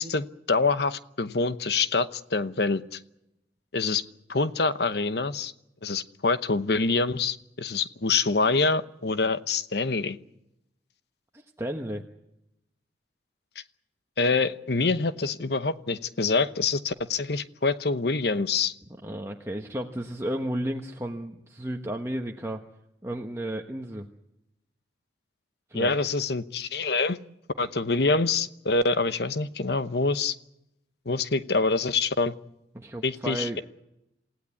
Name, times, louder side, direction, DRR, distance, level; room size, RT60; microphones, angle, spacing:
voice 1, 0.0-3.0 3.7-4.0 4.3-5.5 5.8-10.2 14.2-18.7 25.7-27.2 27.6-30.3 31.1-32.3 33.0-33.5, left 3 dB, 65° left, 12 dB, 0.9 m, -26 dB
voice 2, 11.3-12.0 19.0-22.6 23.0-24.1 25.7-25.9 32.7-33.6, right 1 dB, 15° right, 2 dB, 1.2 m, -33 dB
28.0 x 16.0 x 8.5 m, 0.86 s
head